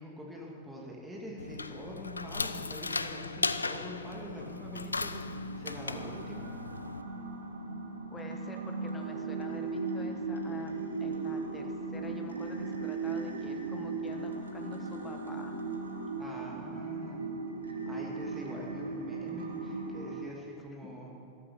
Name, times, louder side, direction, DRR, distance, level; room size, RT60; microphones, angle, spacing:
voice 1, 0.0-6.5 16.2-17.2 17.7-21.2, equal, 10° right, -3 dB, 2.7 m, -44 dB
sound 1, 1.4-7.0, left 3 dB, 80° left, 0.3 m, -36 dB
sound 2, 3.6-20.3, right 3 dB, 75° right, 1.2 m, -38 dB
voice 2, 8.1-15.6, left 3 dB, 15° left, 4 dB, 1.3 m, -47 dB
13.5 x 12.0 x 4.6 m, 2.6 s
figure-of-eight pair, 90°, 0 cm